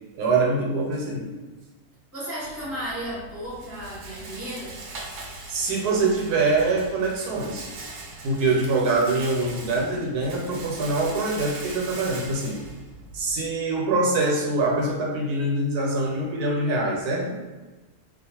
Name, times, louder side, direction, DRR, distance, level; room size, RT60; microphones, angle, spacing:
voice 1, 0.1-1.3 5.5-7.7 8.2-12.6 13.1-17.4, right 3 dB, 90° right, -1 dB, 1.2 m, -24 dB
voice 2, 2.1-4.8, equal, 10° right, -8 dB, 0.7 m, -34 dB
Rattle, 2.4-13.5, right 2 dB, 65° right, 0.8 m, -41 dB
2.4 x 2.4 x 2.8 m, 1.2 s
omnidirectional pair, 1.6 m